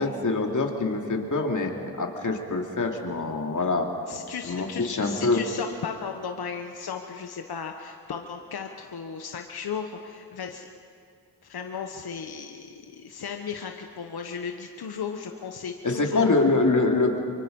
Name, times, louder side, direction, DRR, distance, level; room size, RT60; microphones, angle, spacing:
voice 1, 0.0-3.9 4.4-5.4 15.8-17.2, left 3 dB, 50° left, 2 dB, 2.8 m, -25 dB
voice 2, 4.1-10.7 11.4-16.3, left 6 dB, 70° left, 4 dB, 1.2 m, -35 dB
24.0 x 24.0 x 5.4 m, 2.3 s
cardioid pair, 55°, 39 cm